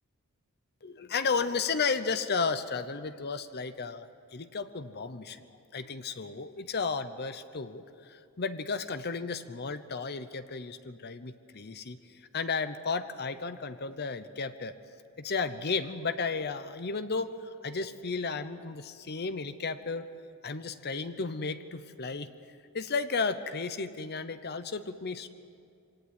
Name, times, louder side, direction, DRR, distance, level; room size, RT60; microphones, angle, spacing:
voice 1, 0.8-5.5 5.7-12.0 12.3-14.7 15.2-20.1 20.4-22.3 22.7-25.3, left 4 dB, 50° left, 11 dB, 0.8 m, -33 dB
24.0 x 18.0 x 9.5 m, 2.4 s
head